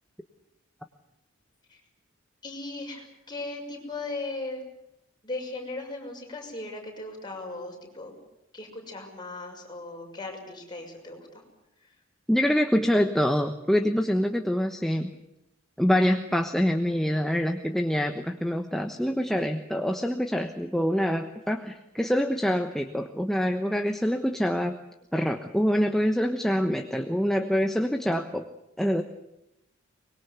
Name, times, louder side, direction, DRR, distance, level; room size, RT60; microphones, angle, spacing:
voice 1, 2.4-4.6 5.2-8.2 8.5-11.3, left 2 dB, 20° left, 0 dB, 6.3 m, -37 dB
voice 2, 12.3-15.1 15.8-24.8 25.1-28.4 28.8-29.0, equal, ahead, 5 dB, 1.1 m, -25 dB
24.5 x 21.5 x 8.2 m, 0.84 s
head